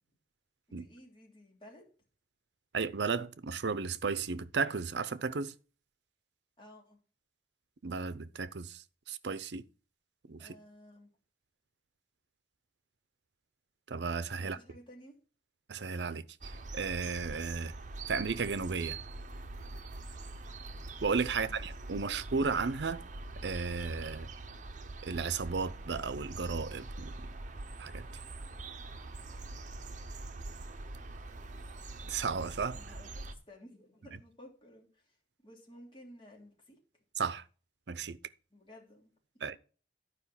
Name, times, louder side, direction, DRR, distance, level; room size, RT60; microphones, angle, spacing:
voice 1, 0.7-1.9 6.6-7.0 10.4-11.1 14.4-15.1 21.3-21.6 32.8-35.2 35.4-36.8 38.5-39.6, left 1 dB, 30° left, 3.2 m, -55 dB
voice 2, 2.7-5.5 7.8-9.6 10.3-10.5 13.9-14.6 15.7-17.7 18.1-19.0 21.0-23.0 23.4-24.3 25.0-27.3 27.8-28.1 32.1-32.8 37.2-37.4 37.9-38.2 39.4-39.6, right 5 dB, 70° right, 0.6 m, -34 dB
sound 1, 16.4-33.4, right 2 dB, 45° right, 0.8 m, -44 dB
11.5 x 5.1 x 5.6 m
head